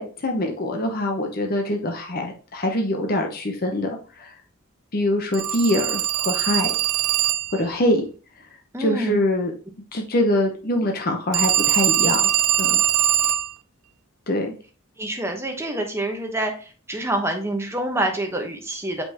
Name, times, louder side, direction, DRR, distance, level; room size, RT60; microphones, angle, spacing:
voice 1, 0.0-3.9 4.2-4.3 4.9-6.7 7.5-8.0 8.8-9.5 9.9-12.3 12.6-12.8 14.3-14.5, left 1 dB, 40° left, 3 dB, 0.8 m, -24 dB
Telephone, 5.3-7.6 11.3-13.5, right 11 dB, 75° right, 0.5 m, -21 dB
voice 2, 8.7-9.2 15.0-19.0, right 1 dB, 10° right, 3 dB, 1.0 m, -27 dB
6.8 x 5.3 x 2.9 m, 0.37 s
head